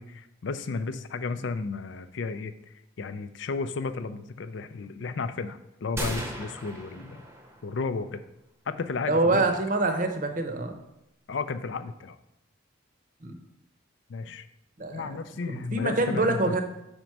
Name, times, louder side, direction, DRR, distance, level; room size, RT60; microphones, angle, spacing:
voice 1, 0.0-7.3 7.6-8.2 8.7-9.6 11.3-12.2 14.1-14.5 14.8-16.6, left 4 dB, 65° left, 11 dB, 0.4 m, -33 dB
sound 1, 6.0-7.8, right 1 dB, 15° right, 0.7 m, -36 dB
voice 2, 9.1-10.8 13.2-13.4 14.8-15.2 15.5-16.6, right 2 dB, 40° right, 6 dB, 0.7 m, -26 dB
5.1 x 4.5 x 5.9 m, 0.88 s
head